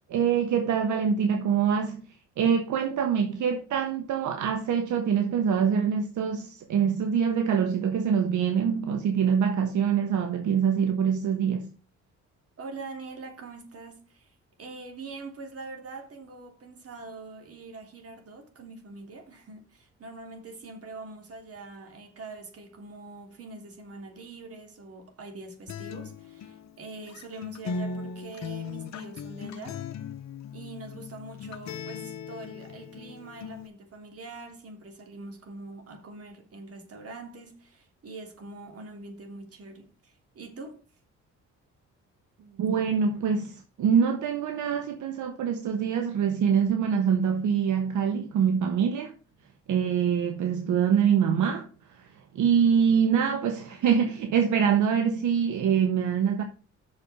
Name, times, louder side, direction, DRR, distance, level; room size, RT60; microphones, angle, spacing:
voice 1, 0.1-2.0 2.4-11.7 42.6-49.1 49.7-56.4, right 7 dB, 75° right, 1.2 m, -25 dB
voice 2, 12.6-29.8 30.5-40.8, right 3 dB, 50° right, 3.1 m, -43 dB
Acoustic guitar, 25.7-33.7, left 5 dB, 65° left, 1.0 m, -38 dB
6.4 x 5.7 x 6.8 m
cardioid pair, 90°, 30 cm